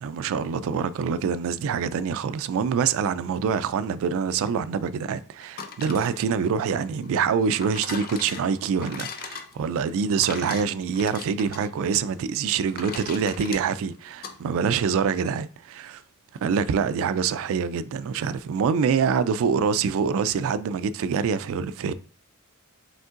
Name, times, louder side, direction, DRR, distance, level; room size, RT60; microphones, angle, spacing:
voice 1, 0.0-16.0 16.4-21.9, right 6 dB, 65° right, 0.3 m, -25 dB
sound 1, 5.4-14.4, left 6 dB, 40° left, 0.5 m, -40 dB
5.1 x 3.6 x 2.4 m
head